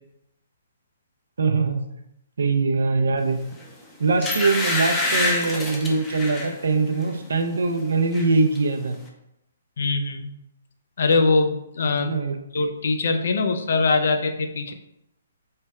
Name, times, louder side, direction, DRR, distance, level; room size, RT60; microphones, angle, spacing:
voice 1, 1.4-1.8 2.4-3.4 4.0-9.0 12.0-12.4, right 3 dB, 80° right, 5 dB, 0.5 m, -22 dB
sound 1, 3.5-3.7 4.2-6.5 7.0-7.2 7.5-8.3 8.5-8.6, left 2 dB, 10° left, 0.5 m, -26 dB
voice 2, 9.8-10.3 11.0-12.1 12.5-14.7, left 3 dB, 65° left, 6 dB, 0.5 m, -22 dB
3.3 x 2.3 x 4.1 m, 0.82 s
hypercardioid pair, 155°, 0 cm